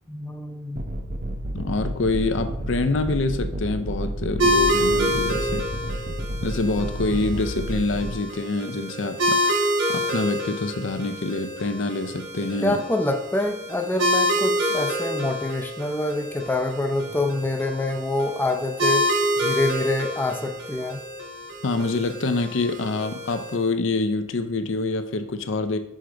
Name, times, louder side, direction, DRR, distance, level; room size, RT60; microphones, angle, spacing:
voice 1, 0.1-0.8 12.6-19.1 19.4-21.0, left 2 dB, 10° left, 5 dB, 0.5 m, -26 dB
sound 1, 0.8-8.1, right 1 dB, 40° right, 0.6 m, -31 dB
voice 2, 1.5-5.7 6.4-12.8 21.6-25.8, left 3 dB, 60° left, 9 dB, 0.6 m, -26 dB
sound 2, 4.4-23.5, equal, 55° right, 1.1 m, -27 dB
6.4 x 4.6 x 3.8 m, 0.85 s
head